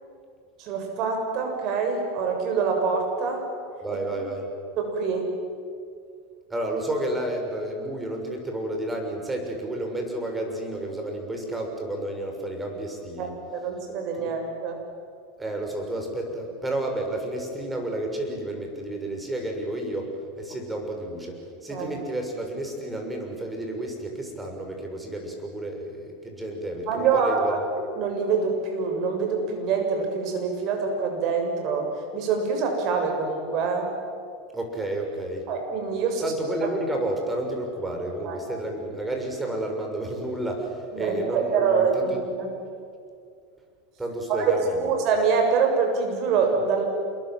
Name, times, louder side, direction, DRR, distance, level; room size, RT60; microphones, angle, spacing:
voice 1, 0.6-3.5 3.9-4.0 4.8-5.3 13.2-14.8 21.7-21.9 26.9-27.6 27.9-31.9 32.1-33.9 35.5-36.3 36.6-36.7 38.2-38.4 40.9-42.1 42.4-42.5 44.3-46.9, right 5 dB, 55° right, 3 dB, 7.2 m, -25 dB
voice 2, 3.8-4.5 6.5-13.3 14.2-14.3 15.4-27.6 34.5-35.5 36.2-42.2 44.0-44.9, right 1 dB, 10° right, 3 dB, 6.3 m, -31 dB
27.5 x 22.5 x 7.7 m, 2.2 s
supercardioid pair, 115°, 0 cm